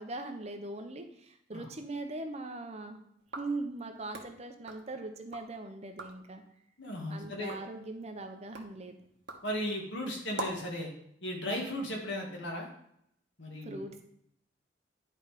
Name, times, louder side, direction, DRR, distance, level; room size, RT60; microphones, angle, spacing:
voice 1, 0.0-3.0 3.4-6.4 7.1-9.0 13.6-14.0, right 2 dB, 35° right, 5 dB, 0.8 m, -40 dB
sound 1, 3.2-5.5 5.8-6.3 6.8-10.8, right 2 dB, 60° right, 1.2 m, -46 dB
voice 2, 6.8-7.6 9.4-10.9 11.2-12.7 13.4-13.8, left 1 dB, 65° left, 1 dB, 1.9 m, -36 dB
10.5 x 3.9 x 5.1 m, 0.72 s
head